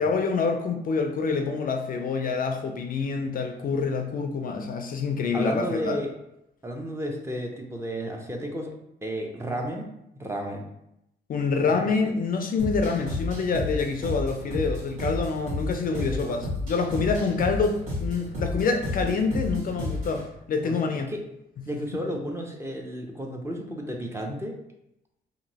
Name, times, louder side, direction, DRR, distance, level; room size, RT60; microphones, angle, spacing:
voice 1, 0.0-6.0 11.3-21.1, left 4 dB, 45° left, 5 dB, 0.4 m, -26 dB
voice 2, 5.3-6.1 6.6-8.7 9.0-9.9 10.2-10.6 11.5-11.9 15.9-16.4 20.6-21.2 21.7-24.6, equal, 15° right, 1 dB, 0.5 m, -33 dB
sound 1, 12.6-20.3, left 2 dB, 85° right, 1.5 m, -32 dB
2.9 x 2.6 x 2.7 m, 0.82 s
cardioid pair, 90°, 20 cm